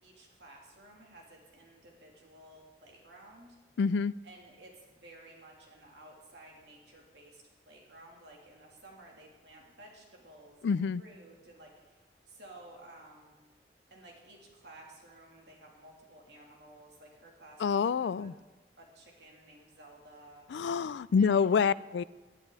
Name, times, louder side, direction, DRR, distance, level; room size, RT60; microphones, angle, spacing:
voice 1, 0.0-3.6 4.2-13.4 13.9-18.3 18.8-20.4 21.1-21.8, right 1 dB, 75° right, 3.0 m, -54 dB
voice 2, 3.8-4.1 10.6-11.0 17.6-18.3 20.5-22.0, left 6 dB, 85° left, 0.4 m, -27 dB
18.5 x 11.0 x 4.1 m
head